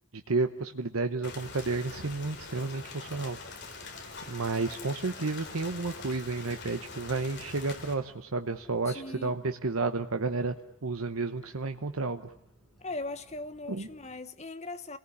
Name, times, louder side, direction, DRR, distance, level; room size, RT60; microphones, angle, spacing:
voice 1, 0.1-3.4 4.2-10.5 10.8-12.3 13.7-13.9, right 3 dB, 75° right, 1.0 m, -31 dB
Rain, 1.2-7.9, left 4 dB, 50° left, 3.8 m, -44 dB
sound 1, 1.9-14.2, right 1 dB, ahead, 7.5 m, -61 dB
voice 2, 8.9-9.3 12.8-15.0, left 2 dB, 30° left, 1.2 m, -39 dB
28.0 x 18.5 x 9.9 m
head